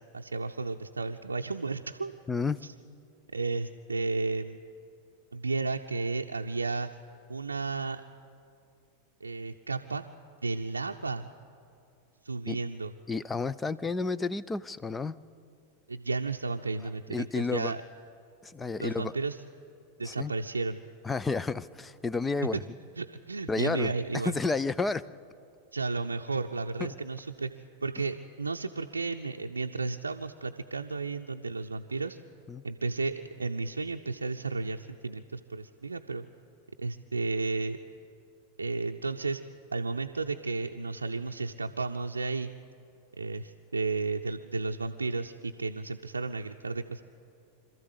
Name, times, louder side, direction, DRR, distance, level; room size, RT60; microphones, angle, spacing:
voice 1, 0.0-2.1 3.3-4.6 5.3-6.9 7.3-8.0 9.2-10.0 10.4-11.3 12.2-12.9 15.9-17.8 18.8-19.4 20.0-20.8 22.5-22.6 23.0-24.3 25.7-27.5 27.8-32.2 32.6-36.2 36.8-37.8 38.6-39.4 39.7-42.5 43.2-47.0, right 3 dB, 75° right, 2 dB, 0.6 m, -33 dB
voice 2, 2.3-2.6 12.5-12.6 13.1-15.2 17.1-17.7 18.4-19.1 20.0-20.3 21.0-22.6 23.5-25.0 32.5-32.6, left 4 dB, 15° left, 17 dB, 0.5 m, -31 dB
26.0 x 13.5 x 8.2 m, 2.5 s
figure-of-eight pair, 90°, 0 cm